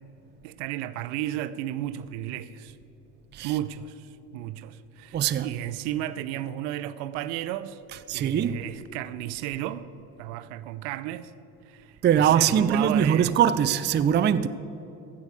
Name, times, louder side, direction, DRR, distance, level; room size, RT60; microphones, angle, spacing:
voice 1, 0.4-2.8 3.4-7.8 8.1-9.9 10.2-11.3 11.7-13.4, right 13 dB, 65° right, 0.7 m, -33 dB
voice 2, 5.1-5.5 8.1-8.6 12.0-14.5, right 9 dB, 25° right, 0.4 m, -22 dB
15.0 x 5.2 x 8.3 m
hypercardioid pair, 65°, 46 cm